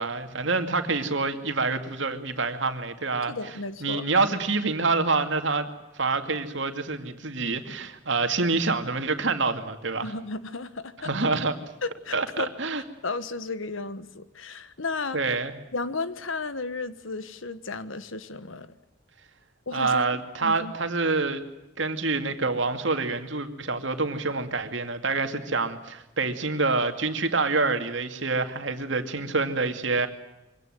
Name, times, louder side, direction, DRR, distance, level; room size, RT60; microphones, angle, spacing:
voice 1, 0.0-3.3 3.8-5.7 6.0-10.1 11.0-11.6 12.1-12.8 15.1-15.5 19.7-21.4 21.8-30.1, right 3 dB, 65° right, 2.4 m, -26 dB
voice 2, 3.3-4.0 10.0-11.1 11.8-12.5 13.0-15.3 15.7-18.7 19.7-20.7, left 3 dB, 85° left, 1.5 m, -34 dB
24.0 x 17.5 x 9.2 m
head